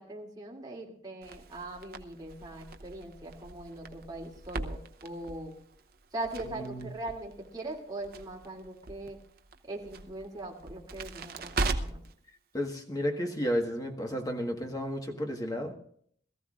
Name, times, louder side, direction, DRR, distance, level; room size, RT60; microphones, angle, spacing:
voice 1, 0.0-5.6 6.1-9.2 9.6-12.0, right 2 dB, 20° right, -2 dB, 2.8 m, -41 dB
Crackle, 1.2-12.1, right 3 dB, 55° right, 0.8 m, -39 dB
voice 2, 6.5-6.9 12.5-15.8, equal, 20° left, 2 dB, 1.6 m, -32 dB
21.5 x 14.0 x 2.5 m, 0.62 s
head